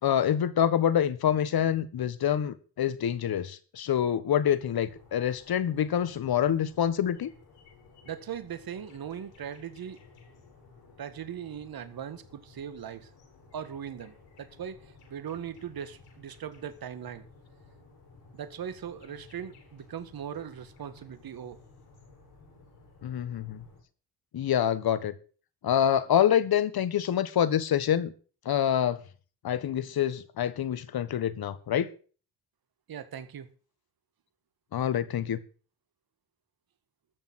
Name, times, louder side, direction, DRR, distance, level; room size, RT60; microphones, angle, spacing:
voice 1, 0.0-7.3 23.0-23.6 24.3-25.1 25.6-28.1 28.4-29.0 29.4-31.9 34.7-35.4, left 9 dB, 55° left, 1.6 m, -26 dB
sound 1, 4.6-23.8, left 3 dB, 80° left, 7.1 m, -56 dB
voice 2, 8.1-10.0 11.0-13.1 13.5-17.3 18.3-21.6 32.9-33.5, right 8 dB, 55° right, 1.9 m, -39 dB
14.0 x 7.0 x 8.1 m
supercardioid pair, 60°, 43 cm